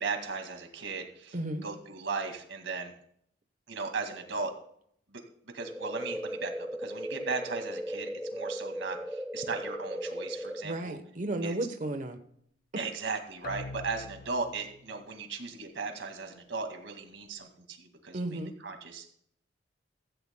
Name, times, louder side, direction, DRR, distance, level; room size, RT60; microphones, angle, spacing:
voice 1, 0.0-2.9 3.7-4.5 5.1-5.2 5.5-6.5 6.8-11.0 11.4-11.5 12.8-19.2, right 4 dB, 85° right, 4 dB, 2.1 m, -37 dB
voice 2, 1.3-1.6 10.6-12.2 18.1-18.5, right 1 dB, 45° right, 7 dB, 1.0 m, -33 dB
sound 1, 5.6-10.6, equal, ahead, 0.4 m, -37 dB
sound 2, 13.4-15.1, left 3 dB, 50° left, 0.6 m, -44 dB
16.0 x 15.0 x 2.2 m, 0.68 s
head